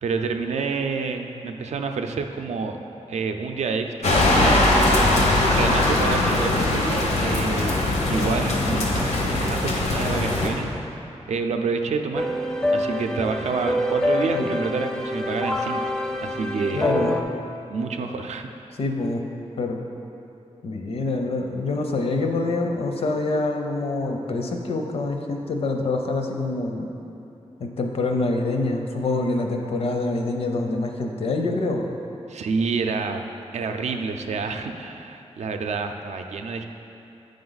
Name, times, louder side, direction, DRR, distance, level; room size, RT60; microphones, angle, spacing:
voice 1, 0.0-2.8 3.1-4.7 5.5-10.7 11.3-12.3 12.7-16.0 16.2-16.8 17.7-18.5 32.3-33.3 33.5-36.6, right 4 dB, 85° right, 5 dB, 0.5 m, -28 dB
sound 1, 4.0-10.5, left 2 dB, 85° left, 1.0 m, -21 dB
sound 2, 12.1-17.2, left 1 dB, 5° left, 0.4 m, -26 dB
voice 2, 14.1-14.6 16.7-17.2 18.8-19.2 19.6-19.8 20.6-26.9 27.6-31.9, left 2 dB, 60° left, 3 dB, 0.6 m, -26 dB
8.5 x 5.1 x 4.0 m, 2.8 s
wide cardioid pair, 180°, 11 cm